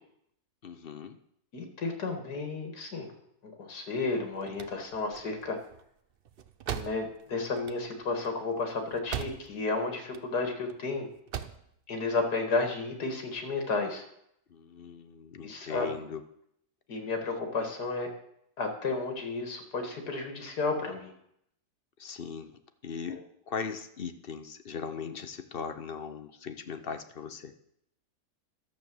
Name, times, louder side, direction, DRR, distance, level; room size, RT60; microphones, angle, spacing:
voice 1, 0.6-1.2 14.5-16.2 22.0-22.5 22.8-27.5, left 6 dB, 45° left, 9 dB, 0.8 m, -39 dB
voice 2, 1.5-3.1 3.4-5.6 6.7-11.1 11.9-14.0 15.4-15.9 16.9-18.1 18.6-21.1 23.1-23.2, left 3 dB, 80° left, 5 dB, 2.5 m, -32 dB
sound 1, 4.1-9.7 10.0-10.8 11.1-11.7, right 8 dB, 55° right, 0.6 m, -40 dB
12.0 x 6.9 x 7.7 m, 0.72 s
omnidirectional pair, 1.7 m